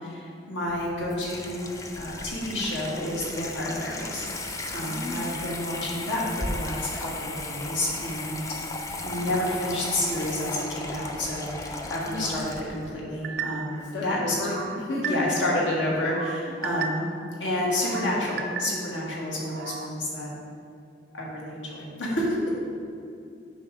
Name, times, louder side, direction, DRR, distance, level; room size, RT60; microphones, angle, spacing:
voice 1, 0.0-8.5 9.0-14.5 15.0-17.1 17.4-20.3 21.1-22.3, left 1 dB, 85° left, -5 dB, 1.7 m, -30 dB
Water tap faucet / Sink (filling or washing), 0.7-12.9, left 2 dB, 15° left, 0.4 m, -36 dB
voice 2, 4.6-5.5 11.8-12.3 13.9-15.2 16.4-16.5 22.0-22.2, left 2 dB, 65° left, -7 dB, 1.0 m, -34 dB
sound 1, 13.2-13.8 14.3-15.5 15.9-17.2 17.6-19.0 19.4-19.9, right 6 dB, 55° right, 0.3 m, -35 dB
7.2 x 5.3 x 3.6 m, 2.5 s
head